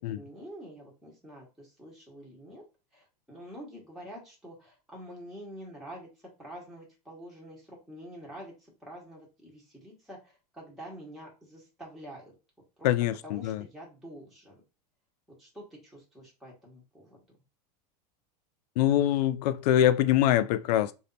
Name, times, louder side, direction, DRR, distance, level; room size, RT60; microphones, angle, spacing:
voice 1, 0.1-2.6 2.9-6.1 6.4-8.5 8.8-12.3 12.8-12.9 13.2-14.6 15.4-17.2, equal, ahead, 1.4 m, -47 dB
voice 2, 12.8-13.6 18.8-20.9, left 12 dB, 70° left, 0.4 m, -24 dB
3.3 x 2.8 x 4.0 m
hypercardioid pair, 120°, 21 cm